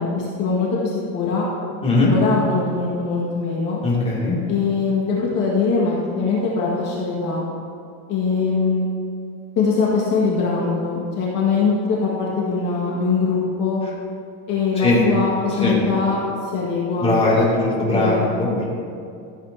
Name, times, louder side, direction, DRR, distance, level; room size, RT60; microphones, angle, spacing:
voice 1, 0.0-1.5 2.1-3.8 4.5-7.5 8.1-8.9 9.6-13.8 14.5-16.2 16.5-17.1 17.9-18.6, left 4 dB, 45° left, -5 dB, 1.9 m, -22 dB
voice 2, 3.8-4.4 14.8-15.1 15.6-15.8 17.0-18.7, left 2 dB, 15° left, -6 dB, 2.7 m, -19 dB
14.5 x 8.5 x 2.9 m, 2.4 s
supercardioid pair, 140°, 42 cm